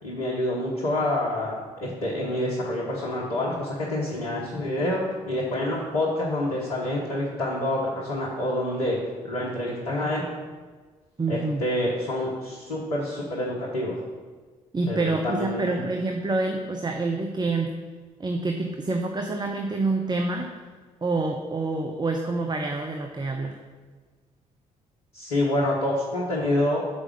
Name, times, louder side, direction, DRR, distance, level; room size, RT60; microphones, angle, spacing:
voice 1, 0.0-9.0 9.2-10.3 11.3-14.0 14.9-15.8 25.1-26.8, left 1 dB, 75° left, -5 dB, 1.1 m, -27 dB
voice 2, 11.2-11.7 14.7-17.7 18.2-20.5 21.0-23.6, right 3 dB, 25° right, 3 dB, 0.8 m, -27 dB
6.2 x 4.9 x 6.4 m, 1.4 s
figure-of-eight pair, 40°, 18 cm